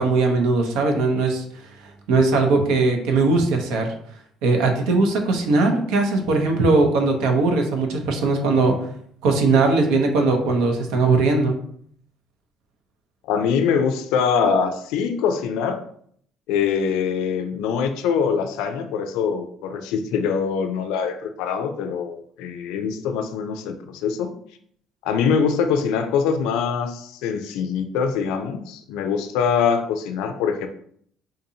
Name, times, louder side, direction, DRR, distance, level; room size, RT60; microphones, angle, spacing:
voice 1, 0.0-1.4 2.1-3.9 4.4-8.8 9.2-11.6, right 3 dB, 80° right, 4 dB, 0.7 m, -19 dB
voice 2, 13.3-15.8 16.5-24.3 25.0-30.7, left 6 dB, 80° left, 7 dB, 0.4 m, -23 dB
3.8 x 2.6 x 2.7 m, 0.63 s
supercardioid pair, 95°, 0 cm